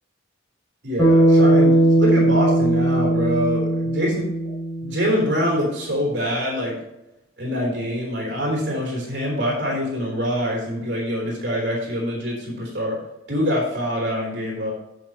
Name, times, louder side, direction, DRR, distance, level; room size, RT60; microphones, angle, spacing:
voice 1, 0.8-4.2 4.8-6.8 7.4-13.0 13.3-14.7, equal, 60° right, -2 dB, 3.3 m, -25 dB
Bass guitar, 1.0-5.4, right 1 dB, 15° left, 2.6 m, -18 dB
7.6 x 7.4 x 4.3 m, 0.88 s
head